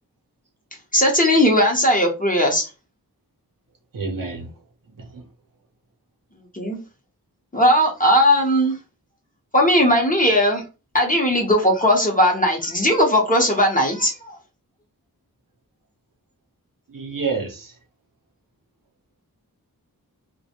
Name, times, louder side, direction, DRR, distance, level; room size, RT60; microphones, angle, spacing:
voice 1, 0.9-2.7 6.5-6.8 7.5-8.8 9.5-10.6 10.9-14.3, equal, 20° left, 0.8 m, -18 dB
voice 2, 3.9-4.5 5.0-5.2 16.9-17.7, right 4 dB, 60° right, 0.7 m, -28 dB
2.2 x 2.1 x 2.8 m
cardioid pair, 40°, 37 cm